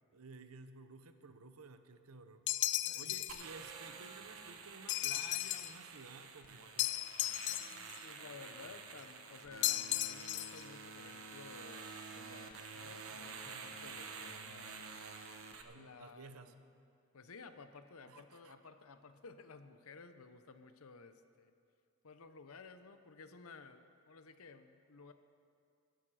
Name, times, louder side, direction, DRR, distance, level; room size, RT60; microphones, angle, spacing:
voice 1, 0.1-2.4 2.9-6.9 13.5-13.7 15.6-16.5 18.1-18.5, right 4 dB, 90° right, 10 dB, 0.8 m, -54 dB
sound 1, 2.5-3.4 4.9-5.8 6.8-8.0 9.6-10.6, left 15 dB, 55° left, 0.4 m, -35 dB
voice 2, 2.8-3.2 7.5-14.9 15.7-16.5 17.1-21.5 22.0-25.1, left 4 dB, 75° left, 10 dB, 0.8 m, -55 dB
sound 2, 3.3-15.6, right 5 dB, 70° right, 1.1 m, -49 dB
17.5 x 11.5 x 4.9 m, 2.4 s
head